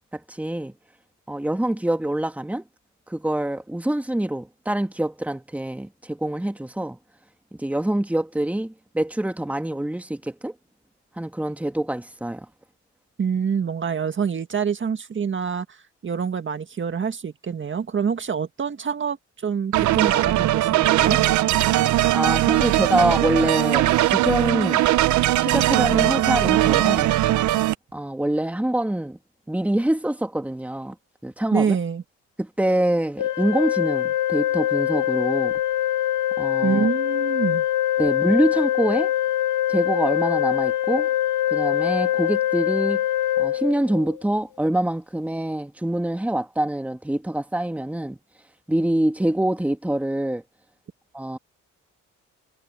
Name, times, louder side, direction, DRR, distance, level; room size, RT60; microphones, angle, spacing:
voice 1, 0.1-0.7 1.3-2.6 3.1-7.0 7.6-10.5 11.2-12.5 22.1-24.9 25.3-27.1 27.9-29.2 29.5-31.0 31.2-31.8 32.4-35.5 36.4-36.9 38.0-39.1 39.7-41.1 41.5-43.0 43.4-48.2 48.7-50.4 51.1-51.4, right 1 dB, 5° right, 1.9 m, -25 dB
voice 2, 13.2-21.2 31.5-32.0 36.6-37.7, right 6 dB, 40° right, 1.8 m, -26 dB
sound 1, 19.7-27.7, right 15 dB, 70° right, 0.7 m, -20 dB
Organ, 33.2-44.2, left 12 dB, 80° left, 1.2 m, -23 dB
cardioid pair, 90°, 30 cm